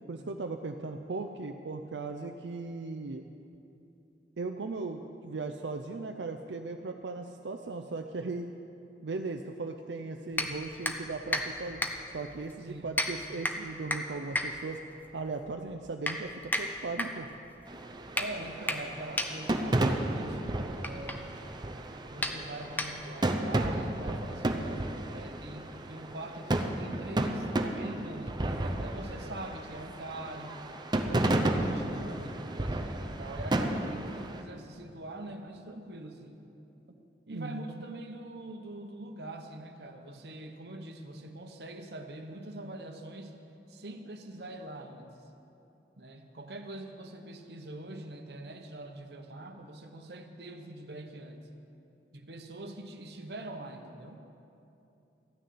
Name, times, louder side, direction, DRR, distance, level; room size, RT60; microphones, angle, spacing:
voice 1, 0.1-3.2 4.4-8.5 9.0-11.8 12.1-14.8 15.1-17.3 37.3-37.8, right 3 dB, 85° right, 5 dB, 0.5 m, -37 dB
sound 1, 10.3-23.3, left 1 dB, 10° left, 0.7 m, -36 dB
sound 2, 17.7-34.4, right 1 dB, 25° right, 0.7 m, -33 dB
voice 2, 18.2-21.4 22.1-30.6 30.9-36.4 36.9-37.0 37.3-43.4 43.7-45.2 46.0-51.5 52.1-54.2, right 1 dB, 65° right, 5 dB, 1.0 m, -44 dB
13.5 x 6.5 x 9.4 m, 2.8 s
head